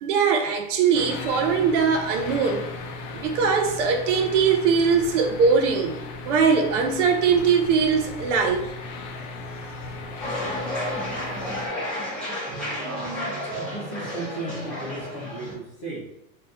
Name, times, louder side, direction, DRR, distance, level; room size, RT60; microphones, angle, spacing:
voice 1, 0.0-2.6 3.1-6.0 6.2-8.7, right 5 dB, 50° right, 3 dB, 0.5 m, -21 dB
sound 1, 0.9-11.7, left 3 dB, 65° left, 0.7 m, -36 dB
sound 2, 10.2-15.5, left 1 dB, ahead, 0.7 m, -31 dB
voice 2, 12.7-16.1, right 2 dB, 20° left, -10 dB, 0.3 m, -36 dB
2.7 x 2.3 x 3.4 m, 0.80 s
supercardioid pair, 155°, 49 cm